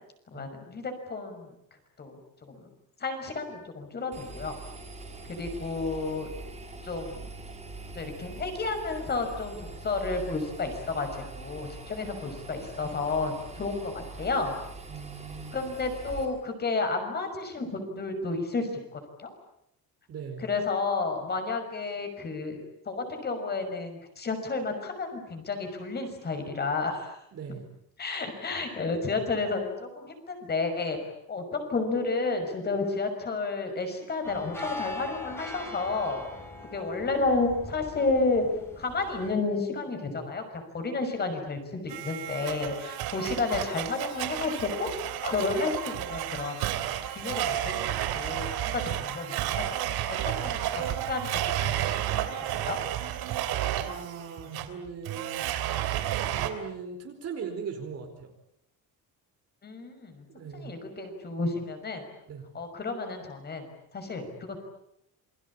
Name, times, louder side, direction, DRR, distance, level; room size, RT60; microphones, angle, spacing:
voice 1, 0.3-1.5 2.0-2.2 2.4-2.7 3.0-4.6 5.2-6.3 6.8-7.3 7.9-14.5 15.5-19.3 20.4-22.6 22.8-27.2 28.0-31.0 31.3-36.2 36.6-38.5 38.8-44.9 45.2-46.6 47.1-49.8 50.1-51.9 52.5-52.8 59.6-60.2 60.5-62.0 62.5-64.6, left 3 dB, 25° left, 6 dB, 6.0 m, -31 dB
Engine, 4.1-16.3, right 3 dB, 20° right, 6.4 m, -43 dB
voice 2, 14.9-15.7 20.1-20.5 27.3-27.7 53.9-55.5 56.4-58.3 60.3-60.7 62.3-62.5, right 6 dB, 40° right, 3 dB, 4.7 m, -39 dB
sound 1, 34.2-39.3, left 2 dB, 5° left, 5.5 m, -41 dB
Domestic sounds home sounds, 41.9-56.5, right 12 dB, 80° right, 3.2 m, -31 dB
28.5 x 23.0 x 8.6 m, 0.78 s
cardioid pair, 165°, 36 cm